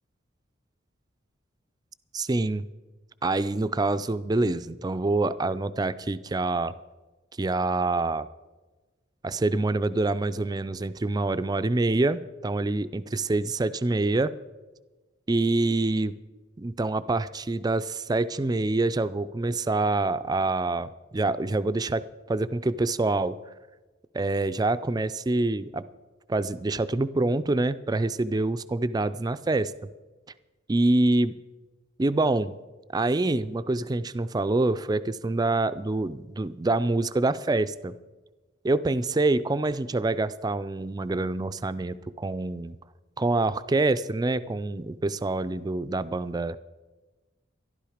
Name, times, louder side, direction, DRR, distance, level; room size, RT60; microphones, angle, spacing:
voice 1, 2.1-2.7 3.2-6.7 7.4-8.3 9.2-14.3 15.3-16.2 16.6-22.0 22.3-23.4 24.1-25.9 26.3-29.7 30.7-31.3 32.0-32.6 32.9-37.9 38.6-42.8 43.2-46.6, right 2 dB, 20° right, 14 dB, 0.4 m, -26 dB
13.5 x 12.0 x 5.0 m, 1.2 s
head